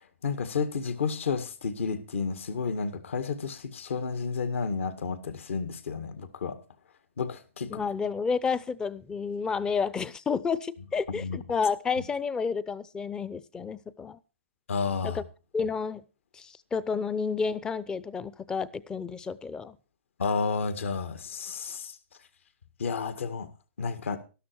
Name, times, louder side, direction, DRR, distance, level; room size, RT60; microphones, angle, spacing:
voice 1, 0.2-6.6 7.2-7.8 11.1-11.4 14.7-15.2 20.2-21.9 22.8-23.5 23.8-24.2, left 5 dB, 75° left, 2.0 m, -31 dB
voice 2, 7.7-14.2 15.0-15.2 15.5-16.0 16.3-19.8, left 5 dB, 10° left, 0.5 m, -30 dB
12.5 x 12.0 x 4.6 m
hypercardioid pair, 140°, 7 cm